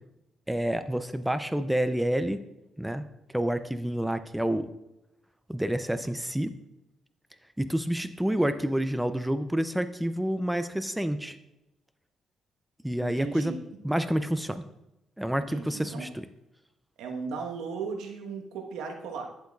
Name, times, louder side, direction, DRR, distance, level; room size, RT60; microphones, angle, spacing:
voice 1, 0.5-2.4 2.8-3.0 3.3-4.7 5.5-6.5 7.6-11.4 12.8-13.5 13.8-14.6 15.2-16.3, right 1 dB, 5° right, 11 dB, 0.5 m, -28 dB
voice 2, 13.0-13.6 15.5-16.1 17.0-19.2, right 5 dB, 90° right, 2 dB, 1.3 m, -36 dB
11.0 x 7.7 x 2.4 m, 0.89 s
cardioid pair, 90°, 0 cm